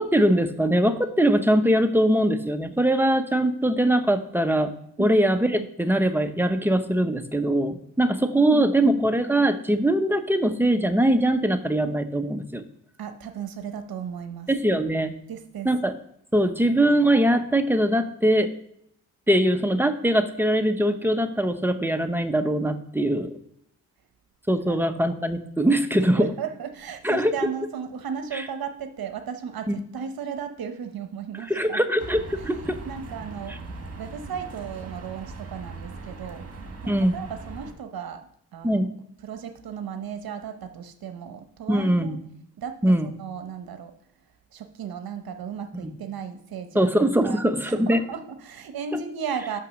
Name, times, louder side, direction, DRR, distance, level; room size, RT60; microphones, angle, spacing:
voice 1, 0.0-4.7 5.0-12.6 14.5-15.1 15.6-15.9 16.3-18.5 19.3-23.4 24.5-26.3 27.0-27.3 28.3-28.4 29.7-29.8 31.5-32.7 36.9-37.2 38.6-38.9 41.7-42.2 42.8-43.1 45.7-46.0 46.7-48.0, right 1 dB, 5° right, 7 dB, 0.8 m, -22 dB
voice 2, 8.1-9.0 13.0-14.5 15.3-15.7 24.7-24.8 26.2-31.8 32.8-33.5 34.0-36.5 36.8-38.8 39.2-42.2 42.6-43.9 44.5-46.9 47.2-49.6, right 7 dB, 65° right, 8 dB, 0.9 m, -35 dB
sound 1, 32.0-37.7, right 3 dB, 40° right, 1.7 m, -39 dB
6.1 x 5.5 x 6.4 m, 0.72 s
cardioid pair, 65°, 38 cm